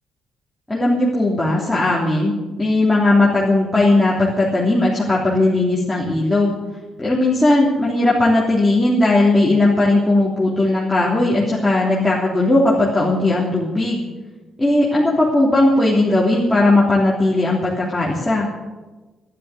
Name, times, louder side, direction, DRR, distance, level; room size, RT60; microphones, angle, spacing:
voice 1, 0.7-2.3 2.6-6.6 7.0-14.0 14.6-18.5, left 2 dB, 10° left, -6 dB, 3.3 m, -17 dB
12.0 x 11.0 x 9.3 m, 1.2 s
cardioid pair, 90°, 0 cm